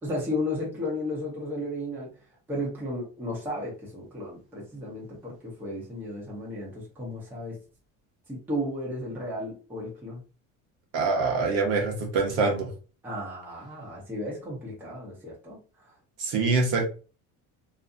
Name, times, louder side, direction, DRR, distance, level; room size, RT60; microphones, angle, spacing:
voice 1, 0.0-2.1 2.5-7.6 8.3-10.2 13.0-15.6, left 1 dB, 5° right, -5 dB, 0.7 m, -34 dB
voice 2, 10.9-12.7 16.2-16.9, right 3 dB, 50° right, 1 dB, 0.8 m, -25 dB
2.6 x 2.4 x 2.5 m, 0.35 s
cardioid pair, 180°, 33 cm